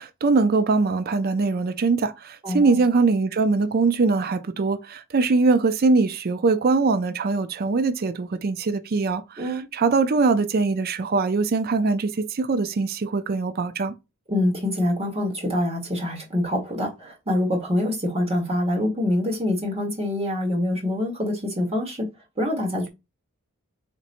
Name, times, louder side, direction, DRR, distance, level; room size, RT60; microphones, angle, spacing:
voice 1, 0.0-13.9, right 4 dB, 45° right, 0.4 m, -22 dB
voice 2, 2.4-2.8 9.4-9.7 14.3-22.1 22.4-22.9, left 1 dB, 25° right, 1.4 m, -25 dB
4.2 x 2.9 x 2.5 m
head